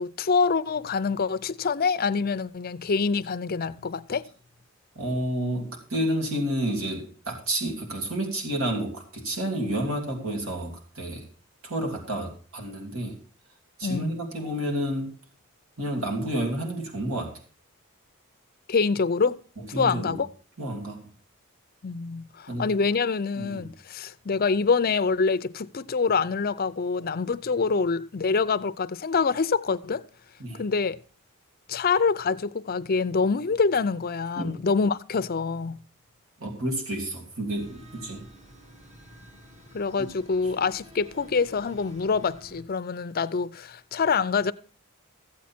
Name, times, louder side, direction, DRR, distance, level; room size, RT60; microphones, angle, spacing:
voice 1, 0.0-4.3 13.8-14.1 18.7-19.4 19.8-20.3 21.8-30.0 30.5-31.0 31.7-35.8 39.7-44.5, left 5 dB, 45° left, 0.5 m, -25 dB
voice 2, 4.9-11.3 11.6-13.2 13.8-15.1 15.8-17.4 19.6-20.2 20.6-21.0 22.5-22.7 23.3-23.7 30.4-30.6 34.3-34.6 36.4-38.3 40.0-40.1 40.4-40.5, right 1 dB, 70° right, 2.8 m, -30 dB
sound 1, 37.5-42.6, equal, 35° right, 1.8 m, -50 dB
14.5 x 8.4 x 4.3 m
head